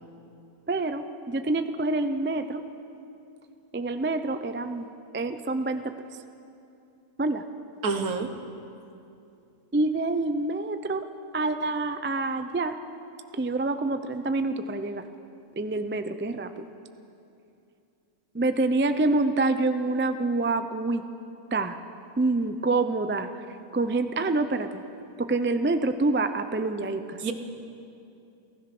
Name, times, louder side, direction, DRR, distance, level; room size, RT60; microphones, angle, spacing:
voice 1, 0.7-2.6 3.7-4.9 5.1-5.9 7.2-7.4 9.7-11.0 11.3-12.8 13.3-15.0 15.6-16.6 18.3-21.0 21.5-21.8 22.2-23.3 23.7-24.8 25.2-27.2, right 2 dB, 20° right, 9 dB, 0.3 m, -26 dB
voice 2, 7.8-8.3 27.2-27.3, right 4 dB, 65° right, 7 dB, 1.8 m, -27 dB
29.0 x 15.5 x 6.1 m, 2.7 s
omnidirectional pair, 1.7 m